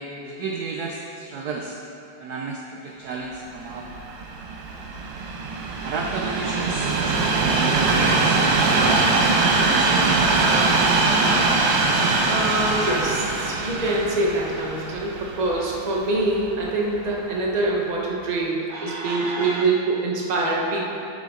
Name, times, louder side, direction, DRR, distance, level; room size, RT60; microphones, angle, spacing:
voice 1, 0.2-1.8 2.2-3.9 5.8-10.4 18.7-19.7, right 3 dB, 75° right, 1 dB, 0.9 m, -32 dB
Train, 3.6-16.8 17.5-17.6, right 3 dB, 90° right, 1.8 m, -22 dB
voice 2, 12.3-20.9, right 2 dB, 30° right, -3 dB, 0.8 m, -25 dB
10.5 x 7.6 x 3.8 m, 2.7 s
omnidirectional pair, 2.4 m